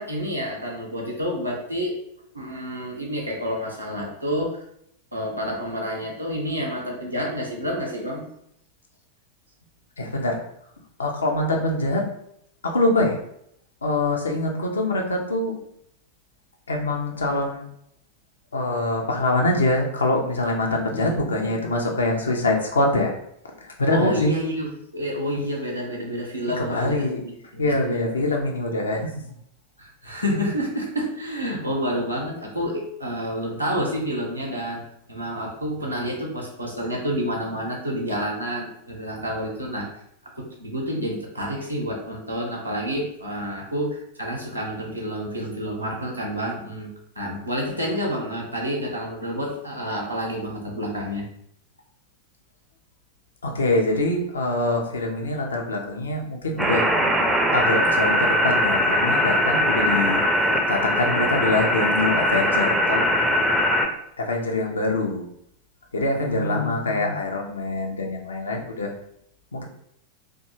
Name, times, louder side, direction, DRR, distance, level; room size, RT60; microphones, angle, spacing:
voice 1, 0.0-1.9 2.3-4.6 5.1-8.3 20.9-21.7 23.9-28.0 29.8-34.8 35.1-40.0 40.3-46.9 47.2-51.3 66.2-67.2, equal, 90° right, -2 dB, 0.6 m, -29 dB
voice 2, 10.0-10.4 11.0-12.1 12.6-13.2 13.8-15.5 16.7-17.7 18.5-23.1 23.8-24.3 26.6-27.2 27.6-29.0 53.4-56.8 57.5-60.2 60.7-63.1 64.2-65.2 65.9-68.9 69.5-69.6, left 2 dB, 70° left, 1 dB, 0.5 m, -24 dB
sound 1, 56.6-63.9, equal, 5° right, 0.4 m, -21 dB
2.6 x 2.2 x 2.9 m, 0.73 s
figure-of-eight pair, 90°, 0 cm